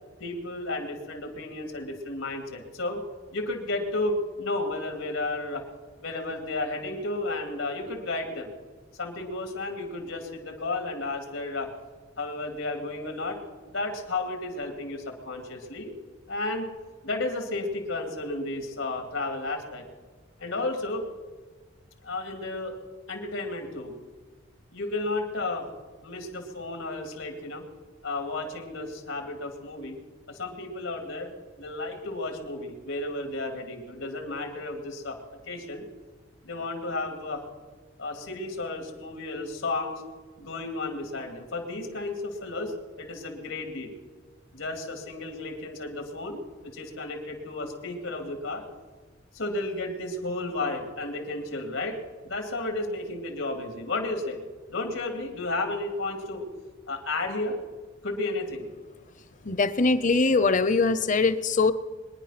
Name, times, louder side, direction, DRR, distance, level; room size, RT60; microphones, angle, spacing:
voice 1, 0.2-3.0 3.3-5.6 6.0-8.5 9.0-11.7 12.2-13.4 13.7-15.9 16.3-16.6 17.0-19.8 20.4-21.1 22.0-22.7 23.1-23.9 24.7-25.7 26.0-27.6 28.0-30.0 30.3-31.3 31.6-35.2 35.5-35.8 36.4-37.4 38.0-40.0 40.4-43.9 44.5-48.6 49.3-54.4 54.7-56.5 56.9-57.6 58.0-58.7, left 2 dB, 85° left, 3 dB, 2.7 m, -33 dB
voice 2, 59.4-61.7, left 3 dB, 40° left, 14 dB, 0.7 m, -22 dB
23.0 x 10.0 x 5.9 m, 1.4 s
head